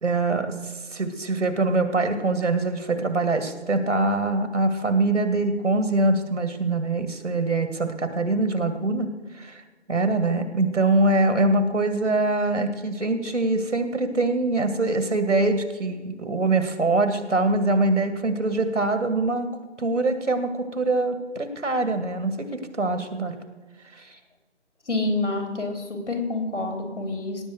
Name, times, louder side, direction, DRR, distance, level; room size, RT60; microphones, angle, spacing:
voice 1, 0.0-9.1 9.4-9.6 9.9-19.5 19.8-23.4 23.9-24.0, right 2 dB, 80° right, 8 dB, 2.2 m, -23 dB
voice 2, 24.8-27.4, left 2 dB, 75° left, 5 dB, 3.4 m, -28 dB
18.0 x 7.4 x 6.4 m, 1.3 s
figure-of-eight pair, 175°, 36 cm